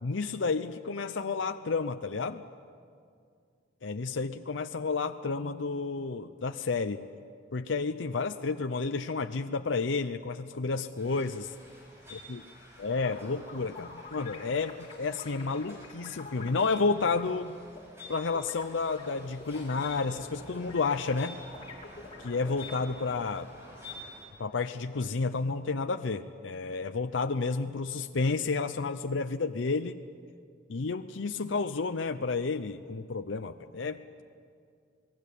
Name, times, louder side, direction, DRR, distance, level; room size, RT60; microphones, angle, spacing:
voice 1, 0.0-2.4 3.8-7.0 7.5-11.5 12.1-12.4 12.8-17.6 18.1-21.4 22.2-23.5 24.4-29.9 30.7-34.2, left 4 dB, 80° left, 8 dB, 0.7 m, -31 dB
sound 1, 11.0-24.3, left 1 dB, 15° right, 7.0 m, -50 dB
sound 2, 13.0-17.2 17.7-22.7, left 3 dB, 30° left, 3.4 m, -47 dB
28.0 x 19.5 x 8.4 m, 2.2 s
head